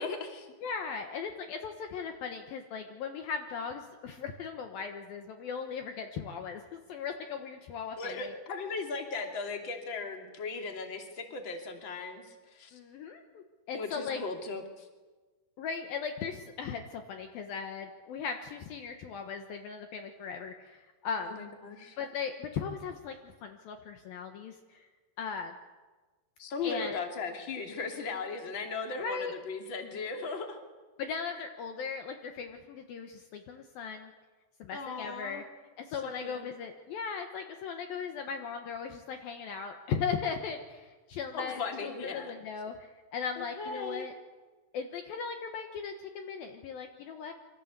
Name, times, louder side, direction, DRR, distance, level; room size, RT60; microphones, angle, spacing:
voice 1, 0.0-0.5 8.0-12.8 13.7-14.9 21.2-22.0 26.4-30.6 34.7-35.4 36.0-36.4 41.3-42.3 43.4-44.1, left 4 dB, 30° left, 4 dB, 3.1 m, -37 dB
voice 2, 0.6-8.3 12.7-14.2 15.6-21.4 22.0-24.9 25.2-25.5 26.6-27.0 29.0-29.3 31.0-34.1 34.6-35.4 35.8-44.1 44.7-47.3, left 6 dB, 65° left, 5 dB, 2.9 m, -38 dB
28.5 x 25.0 x 8.2 m, 1.3 s
omnidirectional pair, 4.8 m